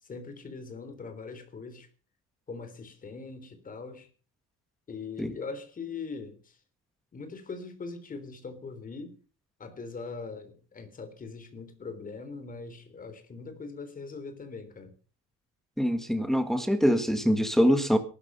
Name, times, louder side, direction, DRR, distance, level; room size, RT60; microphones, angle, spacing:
voice 1, 0.0-1.9 2.5-4.1 4.9-6.5 7.1-9.2 9.6-14.9, left 4 dB, 25° left, 3.5 m, -41 dB
voice 2, 15.8-18.0, equal, ahead, 1.6 m, -24 dB
19.0 x 12.5 x 5.6 m
cardioid pair, 180°, 31 cm